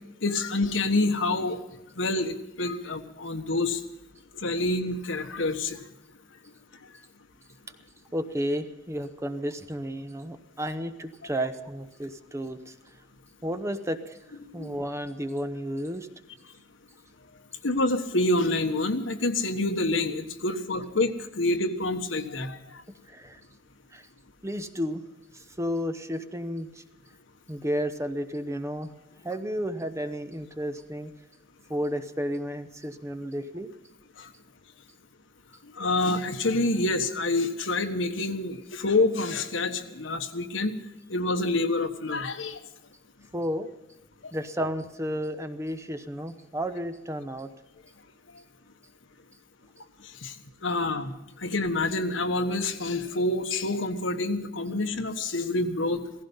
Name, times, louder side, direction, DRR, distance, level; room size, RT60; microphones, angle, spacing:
voice 1, 0.2-1.6 2.0-3.8 4.4-5.8 14.6-14.7 17.6-21.1 21.4-22.6 35.8-40.7 41.1-42.6 44.2-44.3 50.2-50.3 50.6-51.1 51.4-56.0, left 2 dB, 75° left, 7 dB, 1.4 m, -27 dB
voice 2, 8.1-12.7 13.4-14.2 14.5-16.1 23.1-23.4 23.9-24.1 24.4-25.0 25.3-26.8 27.5-28.9 29.2-31.1 31.7-33.7 43.3-43.7 44.3-47.5, equal, 15° right, 9 dB, 0.9 m, -32 dB
17.0 x 15.5 x 5.6 m, 0.93 s
head